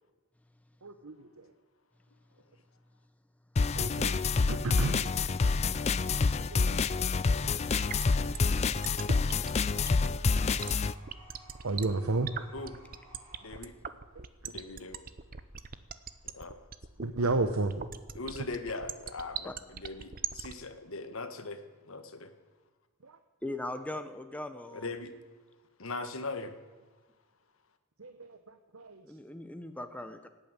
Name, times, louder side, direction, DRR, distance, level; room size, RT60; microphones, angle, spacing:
voice 1, 0.8-1.5 3.7-4.1 4.5-5.1 6.3-7.4 11.6-12.3 14.2-14.5 17.0-17.7 23.0-23.2 28.0-29.0, right 3 dB, 75° right, 8 dB, 0.9 m, -33 dB
sound 1, 3.6-10.9, left 4 dB, 30° left, 0.4 m, -27 dB
sound 2, 7.8-20.5, right 7 dB, 40° right, 0.7 m, -39 dB
sound 3, 10.1-13.6, right 1 dB, 25° right, 5.3 m, -56 dB
voice 2, 13.4-13.7 14.5-15.0 16.3-16.6 18.1-21.6 21.8-22.3 24.7-25.1 25.8-26.5, left 3 dB, 65° left, 9 dB, 1.5 m, -40 dB
voice 3, 23.4-24.9 29.0-30.3, left 1 dB, 5° left, 8 dB, 0.8 m, -39 dB
17.5 x 8.9 x 9.0 m, 1.4 s
head